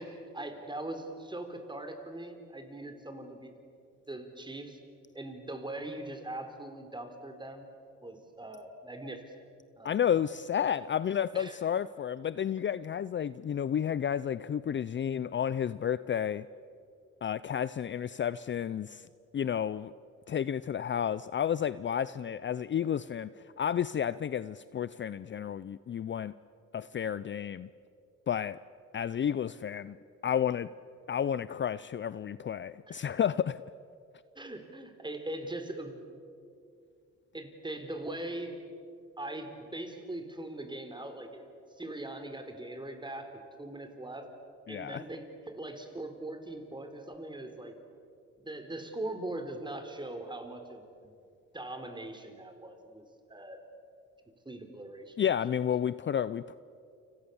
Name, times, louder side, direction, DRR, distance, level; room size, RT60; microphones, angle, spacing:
voice 1, 0.0-3.5 4.1-4.8 5.1-7.7 8.0-9.3 9.8-10.0 11.3-11.6 12.6-12.7 32.9-33.0 34.4-35.9 37.3-38.5 39.2-43.3 43.6-44.3 44.7-47.7 48.4-51.1 51.5-53.6 54.4-55.2, right 1 dB, 15° right, 6 dB, 4.1 m, -41 dB
voice 2, 9.8-16.4 17.2-19.1 19.3-19.9 20.3-26.3 26.7-27.7 28.3-28.6 28.9-30.0 30.2-30.7 31.1-33.6 44.7-45.0 55.2-56.6, left 9 dB, 40° left, 16 dB, 0.6 m, -31 dB
30.0 x 26.0 x 7.2 m, 2.5 s
cardioid pair, 90°, 30 cm